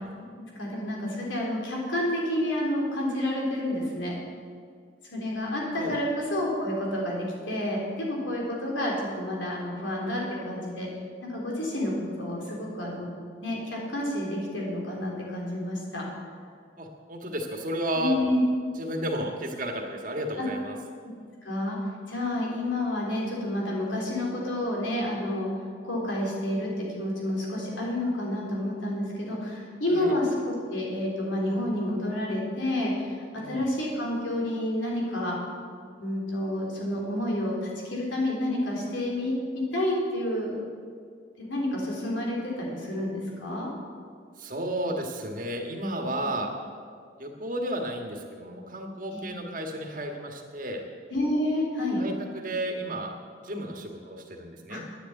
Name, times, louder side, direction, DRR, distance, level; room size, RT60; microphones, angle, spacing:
voice 1, 0.6-4.2 5.1-10.9 11.2-13.1 13.4-16.1 17.9-18.4 20.4-20.5 21.4-21.8 22.1-25.5 25.8-33.2 33.5-35.4 36.0-40.6 41.4-43.7 49.1-49.3 51.1-52.0 54.7-54.8, left 1 dB, 90° left, -2 dB, 3.8 m, -29 dB
voice 2, 16.8-18.2 18.8-20.7 29.9-30.1 33.4-33.6 44.4-46.5 47.2-50.8 51.9-53.1 53.4-54.8, right 1 dB, 45° right, 2 dB, 1.6 m, -33 dB
10.0 x 9.7 x 8.8 m, 2.1 s
head